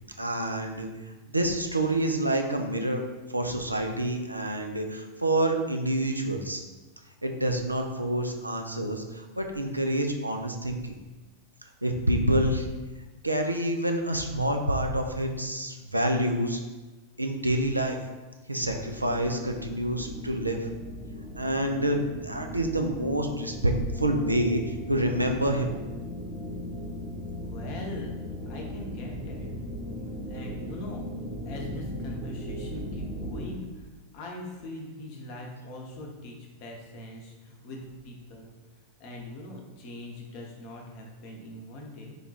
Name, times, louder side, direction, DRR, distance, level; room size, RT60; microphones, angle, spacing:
voice 1, 0.2-0.9 1.3-3.0 3.3-6.6 7.2-11.0 11.8-12.7 13.2-16.6 17.2-18.0 18.5-20.7 21.4-25.7, right 1 dB, 85° right, 4 dB, 0.3 m, -27 dB
sound 1, 18.6-33.5, left 1 dB, 5° right, 0.7 m, -37 dB
voice 2, 27.4-29.5 30.3-31.1 31.5-33.9 34.1-38.5 39.0-42.2, left 1 dB, 45° left, 0 dB, 0.7 m, -41 dB
3.2 x 2.3 x 3.9 m, 1.2 s
figure-of-eight pair, 90°, 0 cm